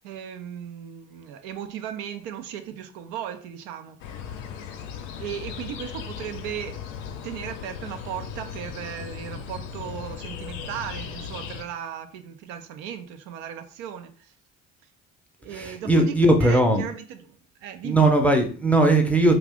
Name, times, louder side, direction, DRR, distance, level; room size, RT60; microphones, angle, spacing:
voice 1, 0.0-4.0 5.2-14.3 15.4-18.1, right 9 dB, 75° right, 0.5 m, -36 dB
sound 1, 4.0-11.6, left 7 dB, 70° left, 0.6 m, -37 dB
voice 2, 15.5-16.8 17.8-19.4, right 1 dB, 5° left, 0.5 m, -19 dB
2.5 x 2.3 x 3.4 m
hypercardioid pair, 55°, 41 cm